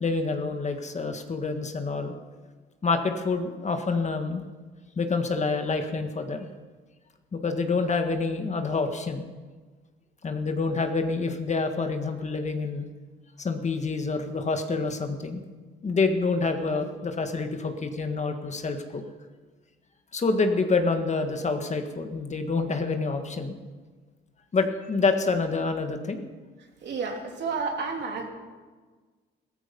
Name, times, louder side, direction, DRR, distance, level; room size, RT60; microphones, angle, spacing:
voice 1, 0.0-2.1 2.8-4.4 4.9-6.5 7.3-9.2 10.2-12.8 13.4-15.4 15.8-19.0 20.1-23.5 24.5-26.3, left 4 dB, 35° left, 6 dB, 1.7 m, -27 dB
voice 2, 26.8-28.3, right 4 dB, 60° right, 1 dB, 3.2 m, -31 dB
16.5 x 14.0 x 5.4 m, 1.4 s
cardioid pair, 90°, 20 cm